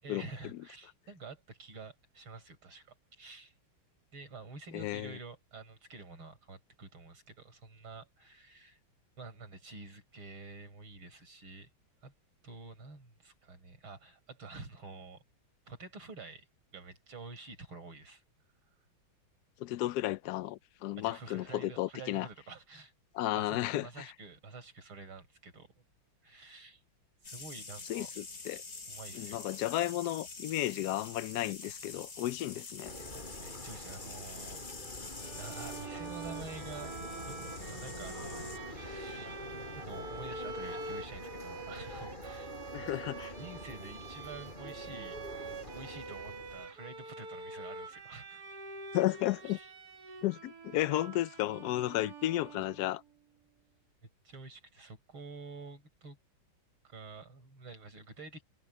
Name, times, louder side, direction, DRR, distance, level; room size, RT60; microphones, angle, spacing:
voice 1, 0.0-3.5 4.1-8.8 9.2-11.7 12.0-12.1 12.4-15.2 15.7-16.5 16.7-18.2 21.0-22.9 23.3-25.7 26.2-26.8 27.2-28.1 28.9-29.4 33.3-34.6 35.3-37.0 37.3-39.4 39.7-42.6 43.4-45.2 45.7-48.4 49.4-49.7 54.2-56.2 56.8-58.4, right 3 dB, 85° right, 6.0 m, -48 dB
voice 2, 4.7-5.1 19.6-22.3 23.1-24.1 27.9-28.6 29.1-32.9 42.7-43.3 48.9-49.6 50.2-53.0, left 15 dB, 80° left, 0.9 m, -33 dB
sound 1, 27.2-38.6, left 3 dB, 45° left, 3.0 m, -46 dB
sound 2, 32.8-46.7, left 1 dB, 20° left, 7.0 m, -46 dB
Bowed string instrument, 35.2-53.0, right 3 dB, 50° right, 2.1 m, -46 dB
omnidirectional pair, 2.2 m